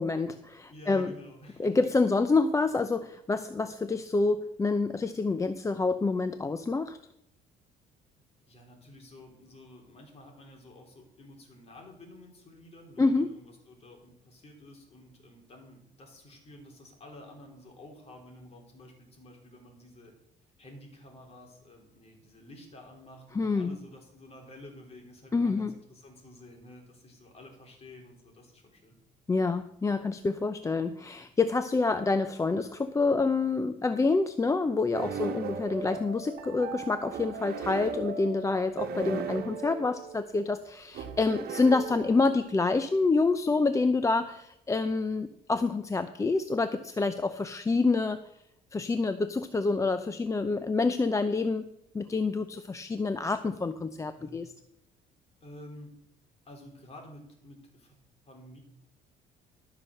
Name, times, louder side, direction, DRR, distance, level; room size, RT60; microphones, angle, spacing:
voice 1, 0.0-1.1 1.6-7.0 13.0-13.3 23.3-23.8 25.3-25.7 29.3-48.2 48.7-51.7 51.9-54.5, left 3 dB, 20° left, 10 dB, 0.6 m, -27 dB
voice 2, 0.7-1.7 8.5-20.1 20.6-29.0 34.9-35.3 54.2-54.4 55.4-55.9 56.4-58.0 58.3-58.6, left 1 dB, 35° left, 1 dB, 3.8 m, -50 dB
sound 1, 34.9-42.6, right 6 dB, 65° right, 1.5 m, -38 dB
13.0 x 5.9 x 6.5 m, 0.79 s
cardioid pair, 110°, 17 cm